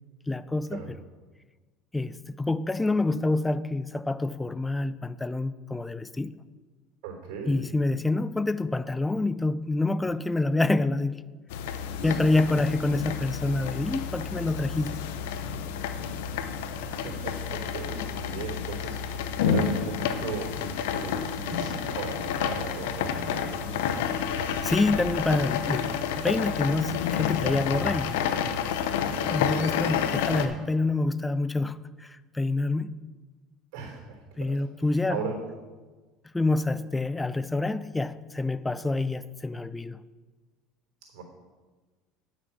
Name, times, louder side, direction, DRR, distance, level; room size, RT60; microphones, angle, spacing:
voice 1, 0.3-0.8 1.9-6.3 7.5-11.2 12.0-15.0 24.6-28.2 29.3-32.9 34.4-35.2 36.3-40.0, left 2 dB, 10° left, 0.4 m, -27 dB
voice 2, 7.0-7.6 12.0-12.3 16.9-20.6 20.9-24.0 29.0-29.3 33.7-34.6 35.1-35.4 41.1-41.2, right 5 dB, 70° right, 3.4 m, -37 dB
sound 1, 11.5-30.5, left 7 dB, 85° left, 0.7 m, -30 dB
9.7 x 6.3 x 6.0 m
supercardioid pair, 105°, 0 cm